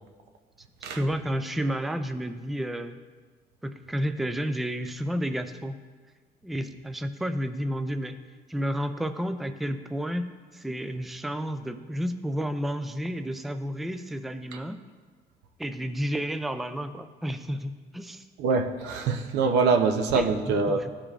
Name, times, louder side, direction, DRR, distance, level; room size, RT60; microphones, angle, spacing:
voice 1, 0.9-3.0 3.6-5.8 6.4-8.2 8.5-14.8 15.6-18.3 20.1-20.4 20.7-20.9, equal, ahead, 9 dB, 0.3 m, -31 dB
voice 2, 18.4-20.8, right 4 dB, 85° right, 6 dB, 0.7 m, -24 dB
14.0 x 5.0 x 2.4 m, 1.5 s
cardioid pair, 110°, 17 cm